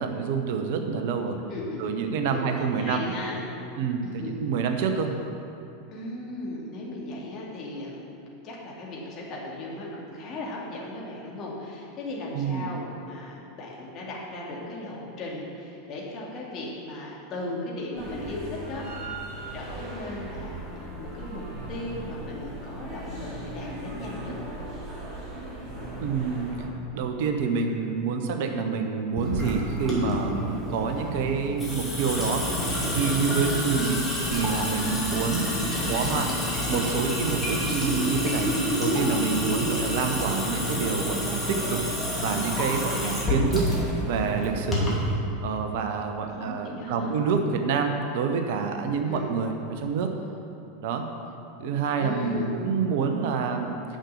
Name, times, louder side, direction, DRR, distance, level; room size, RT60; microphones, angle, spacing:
voice 1, 0.0-1.4 1.8-3.1 3.8-5.1 12.3-12.7 26.0-26.6 26.9-32.5 32.9-34.0 34.3-35.5 35.9-36.3 36.7-41.9 42.2-43.7 44.1-45.0 45.4-50.1 50.8-51.0 51.6-53.8, right 5 dB, 55° right, 5 dB, 0.9 m, -27 dB
voice 2, 1.5-1.8 2.3-3.4 4.0-4.5 5.9-8.0 8.4-18.9 19.5-21.4 21.7-24.4 30.0-30.2 35.5-36.1 42.7-43.0 46.3-47.1 49.0-49.3 52.0-52.5, left 2 dB, 35° left, -4 dB, 2.5 m, -37 dB
sound 1, 18.0-26.7, right 1 dB, 25° right, 2.8 m, -38 dB
Water tap faucet / Sink (filling or washing) / Drip, 29.2-45.1, equal, 10° left, 2.8 m, -28 dB
10.0 x 6.4 x 6.6 m, 2.7 s
figure-of-eight pair, 85°, 0 cm